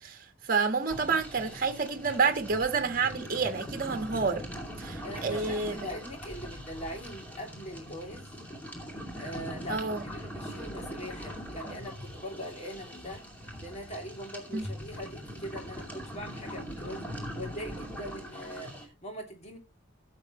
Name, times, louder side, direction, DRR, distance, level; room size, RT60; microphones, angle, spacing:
voice 1, 0.0-4.4 4.8-5.8 9.7-10.0 14.5-14.6, right 4 dB, 45° right, 1.3 m, -29 dB
sound 1, 0.9-18.9, equal, 10° left, 2.5 m, -41 dB
voice 2, 5.0-8.3 9.2-13.2 13.6-19.6, equal, 35° left, 2.7 m, -42 dB
15.0 x 6.5 x 3.0 m
head